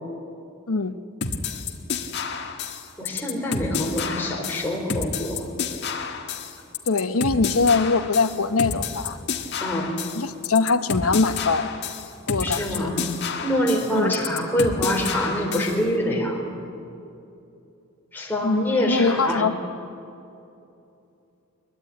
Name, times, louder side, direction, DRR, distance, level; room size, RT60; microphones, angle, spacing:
sound 1, 1.2-15.8, left 5 dB, 50° left, 1.6 m, -30 dB
voice 1, 3.0-5.5 9.6-9.9 12.4-13.1 13.4-16.4 18.1-19.4, left 1 dB, 10° left, -2 dB, 4.2 m, -25 dB
voice 2, 6.9-9.2 10.1-11.8 12.3-12.9 13.9-14.2 18.4-19.5, left 4 dB, 85° left, 11 dB, 1.0 m, -22 dB
22.0 x 22.0 x 9.4 m, 2.7 s
head